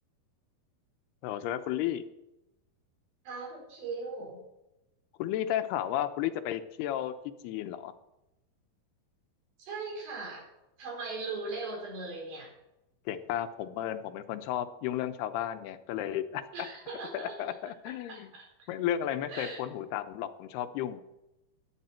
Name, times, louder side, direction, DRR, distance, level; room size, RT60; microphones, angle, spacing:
voice 1, 1.2-2.1 5.2-7.1 7.4-7.9 13.1-16.7 17.1-18.3 18.7-21.0, left 11 dB, 90° left, 10 dB, 2.9 m, -33 dB
voice 2, 3.2-4.4 9.6-10.4 10.8-12.5 16.5-17.4 17.9-18.5 19.3-19.6, right 3 dB, 70° right, -1 dB, 6.5 m, -39 dB
18.0 x 12.0 x 4.4 m, 0.92 s
omnidirectional pair, 4.5 m